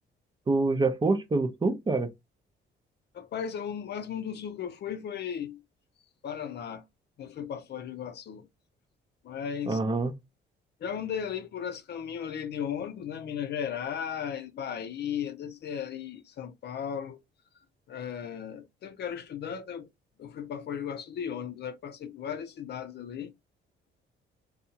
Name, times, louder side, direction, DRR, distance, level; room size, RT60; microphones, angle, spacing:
voice 1, 0.5-2.1 9.7-10.1, right 3 dB, 25° right, 0.6 m, -26 dB
voice 2, 3.1-5.6 6.2-6.8 7.2-8.5 9.2-9.8 10.8-17.2 17.9-19.9 20.2-23.3, left 8 dB, 55° left, 0.5 m, -36 dB
2.7 x 2.3 x 2.7 m
cardioid pair, 90°, 20 cm